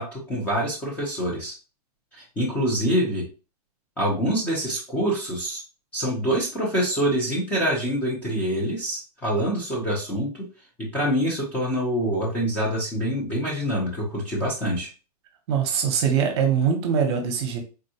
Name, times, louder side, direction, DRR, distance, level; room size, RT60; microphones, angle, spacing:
voice 1, 0.0-1.5 2.1-3.3 4.0-5.6 5.9-10.3 10.8-14.9, equal, 10° left, -4 dB, 0.5 m, -25 dB
voice 2, 15.5-17.6, right 7 dB, 45° right, 4 dB, 0.7 m, -22 dB
3.6 x 2.2 x 2.7 m, 0.33 s
supercardioid pair, 170°, 20 cm